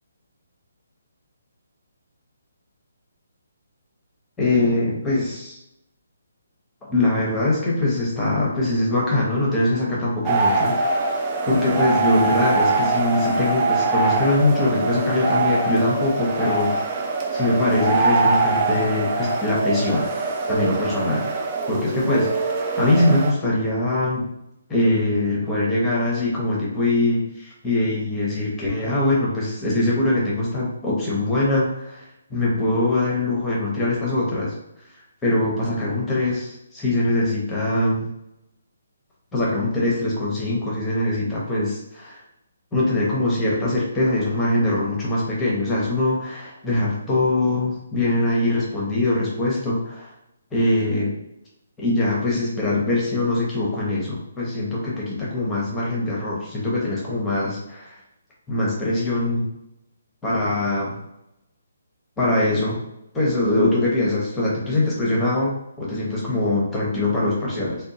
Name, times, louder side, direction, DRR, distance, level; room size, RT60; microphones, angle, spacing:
voice 1, 4.4-5.6 6.9-11.2 11.4-17.0 17.3-20.1 20.5-21.2 21.7-24.2 24.7-34.5 35.2-38.1 39.3-42.2 42.7-50.1 50.5-51.1 51.8-58.0 58.5-59.5 60.2-60.9 62.2-62.8 63.1-67.8, left 2 dB, 10° left, -5 dB, 0.9 m, -22 dB
sound 1, 10.2-23.3, right 3 dB, 25° right, 0.4 m, -23 dB
3.5 x 2.2 x 2.7 m, 0.85 s
figure-of-eight pair, 140°, 0 cm